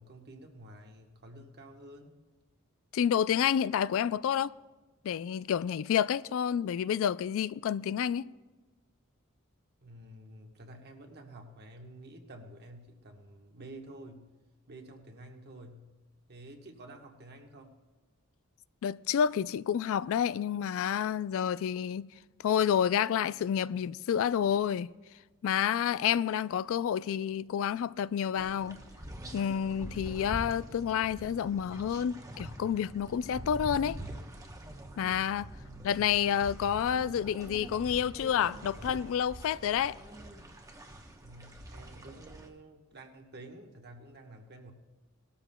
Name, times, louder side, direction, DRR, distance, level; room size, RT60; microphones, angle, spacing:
voice 1, 0.0-2.2 9.8-14.3 14.7-15.9 16.3-17.8 35.5-36.0 41.2-44.7, right 1 dB, 50° right, 1.3 m, -50 dB
voice 2, 2.9-4.5 5.0-8.3 18.8-22.1 22.4-24.9 25.4-28.8 29.3-34.0 35.0-35.5 35.8-40.0, left 8 dB, 65° left, 0.3 m, -29 dB
sound 1, 28.3-42.5, right 1 dB, 15° right, 0.9 m, -45 dB
19.0 x 13.0 x 2.2 m
head